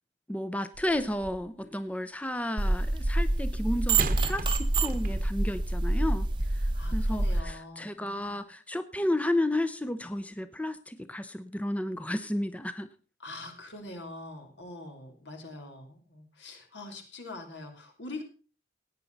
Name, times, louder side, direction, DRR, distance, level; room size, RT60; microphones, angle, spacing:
voice 1, 0.3-6.3 6.6-12.9, left 1 dB, 10° left, 11 dB, 0.6 m, -32 dB
sound 1, 0.7-1.6 4.0-5.5 6.3-6.4, right 3 dB, 50° right, 1.0 m, -39 dB
sound 2, 2.6-7.4, right 2 dB, 25° right, 0.8 m, -27 dB
voice 2, 6.7-8.4 13.2-18.2, left 2 dB, 80° left, 4 dB, 3.2 m, -44 dB
17.5 x 9.1 x 4.0 m, 0.36 s
head